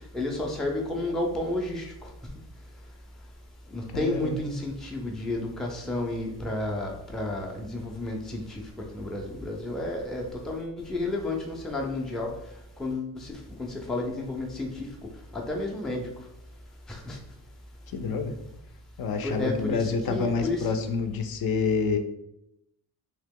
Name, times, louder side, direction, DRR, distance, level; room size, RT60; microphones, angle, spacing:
voice 1, 0.1-1.9 3.7-8.6 8.9-12.3 12.8-13.3 13.6-14.9 15.3-16.1 16.9-17.2 19.2-20.7, left 2 dB, ahead, 0 dB, 0.4 m, -31 dB
voice 2, 3.9-4.5 17.9-18.3 19.0-22.0, left 4 dB, 60° left, 7 dB, 0.5 m, -28 dB
2.9 x 2.8 x 3.6 m, 0.83 s
cardioid pair, 130°, 41 cm